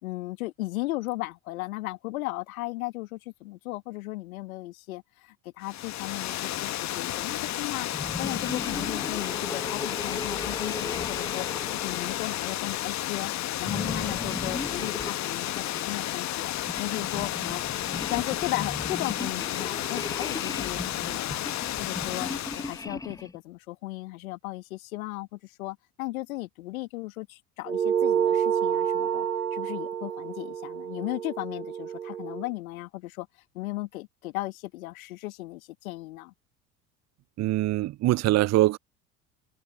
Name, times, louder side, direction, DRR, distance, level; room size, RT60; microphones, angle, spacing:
voice 1, 0.0-13.3 13.6-16.5 16.8-21.4 21.8-22.3 22.6-29.3 29.5-33.3 33.5-36.3, left 19 dB, 70° left, 1.8 m, -36 dB
Water, 5.6-22.8, left 14 dB, 40° left, 1.1 m, -32 dB
sound 1, 7.9-12.7 13.6-15.9 16.5-23.4, left 3 dB, 10° left, 1.0 m, -37 dB
sound 2, 27.7-32.5, right 8 dB, 85° right, 1.3 m, -28 dB
voice 2, 37.4-38.8, right 16 dB, 40° right, 0.8 m, -23 dB
figure-of-eight pair, 65°, 44 cm